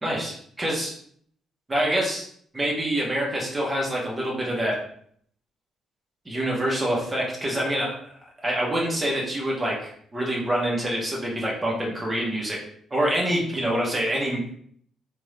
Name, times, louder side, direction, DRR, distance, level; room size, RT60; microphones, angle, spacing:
voice 1, 0.0-0.9 1.7-2.2 2.5-4.8 6.2-8.0 8.4-12.6 12.9-14.6, right 1 dB, 15° right, -4 dB, 1.0 m, -26 dB
4.5 x 2.6 x 3.3 m, 0.62 s
cardioid pair, 130°, 0 cm